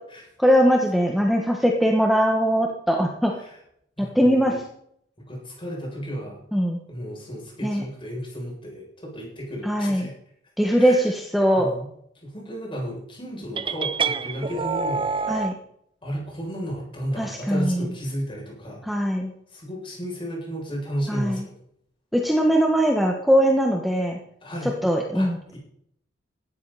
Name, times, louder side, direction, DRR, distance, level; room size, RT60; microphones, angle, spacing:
voice 1, 0.4-3.3 4.0-4.6 6.5-6.8 7.6-7.8 9.6-10.1 10.6-11.7 15.3-15.5 17.2-17.9 18.8-19.3 21.1-21.4 22.1-24.2 24.6-25.6, equal, ahead, 0 dB, 1.7 m, -21 dB
voice 2, 4.0-4.5 5.3-6.4 6.9-10.1 10.8-11.0 11.5-11.9 12.2-15.3 16.0-18.8 19.5-21.5 24.4-24.7 25.1-25.6, equal, 30° left, -2 dB, 7.5 m, -33 dB
sound 1, 13.6-15.5, right 5 dB, 30° right, 0.7 m, -26 dB
17.0 x 13.0 x 4.3 m, 0.70 s
head